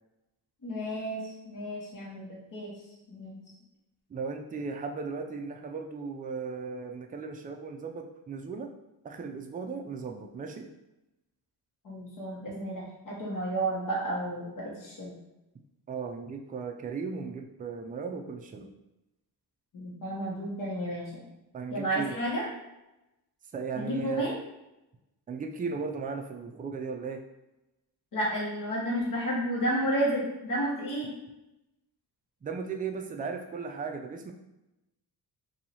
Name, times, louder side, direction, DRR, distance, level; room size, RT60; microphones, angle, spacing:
voice 1, 0.6-2.7 3.1-3.4 11.8-15.2 19.7-21.2 21.7-22.4 23.7-24.3 28.1-31.1, right 1 dB, 50° left, -5 dB, 1.4 m, -32 dB
voice 2, 4.1-8.7 9.0-10.7 15.9-18.7 21.5-22.2 23.5-24.3 25.3-27.2 32.4-34.3, right 5 dB, 20° right, 3 dB, 0.4 m, -36 dB
2.9 x 2.7 x 4.1 m, 0.95 s
cardioid pair, 110°, 40 cm